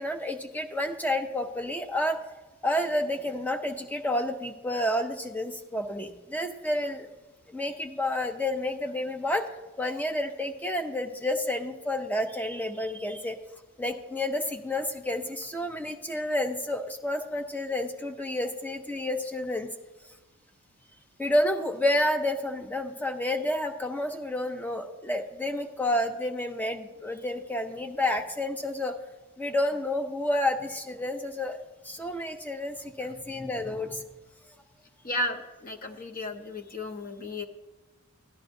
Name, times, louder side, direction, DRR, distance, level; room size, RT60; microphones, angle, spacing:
voice 1, 0.0-2.2 2.6-7.1 7.5-9.4 9.8-13.4 13.8-19.7 21.2-28.9 29.4-31.6 31.8-34.0, left 1 dB, 10° left, 5 dB, 0.6 m, -30 dB
voice 2, 35.0-37.5, left 1 dB, 40° left, 4 dB, 0.8 m, -34 dB
14.0 x 10.5 x 2.6 m, 1.2 s
head